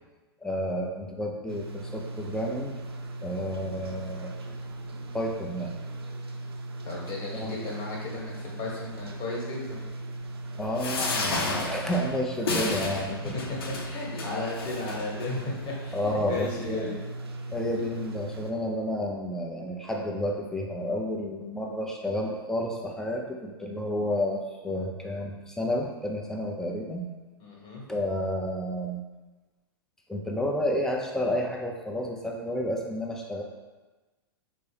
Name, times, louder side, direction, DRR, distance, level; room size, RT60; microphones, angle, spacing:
voice 1, 0.4-2.8 3.2-4.4 5.1-5.7 7.3-7.5 10.6-13.3 15.9-17.0 17.5-27.1 27.9-29.0 30.1-33.4, equal, 5° left, -1 dB, 0.5 m, -31 dB
sound 1, 1.5-18.5, right 2 dB, 90° right, 0.4 m, -38 dB
voice 2, 6.8-9.8 13.2-17.0 27.4-27.9, left 3 dB, 40° left, -4 dB, 1.2 m, -35 dB
sound 2, 10.8-15.3 16.0-16.1 16.3-16.4, left 3 dB, 75° left, 0.6 m, -32 dB
4.3 x 2.1 x 3.2 m, 1.2 s
hypercardioid pair, 105°, 13 cm